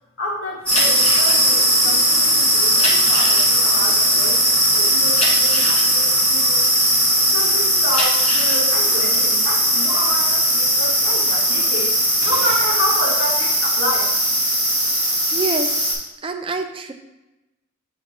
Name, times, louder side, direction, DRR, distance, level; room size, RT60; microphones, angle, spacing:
voice 1, 0.2-6.7 7.0-14.0, equal, 65° left, -5 dB, 2.1 m, -29 dB
sound 1, 0.6-7.2 7.7-11.6 12.0-12.7, left 1 dB, 30° left, 1.0 m, -28 dB
sound 2, 0.7-15.9, equal, 5° left, 1.9 m, -18 dB
voice 2, 15.3-15.8 16.2-16.9, right 3 dB, 25° right, 5 dB, 0.5 m, -26 dB
7.6 x 3.4 x 3.8 m, 0.98 s
head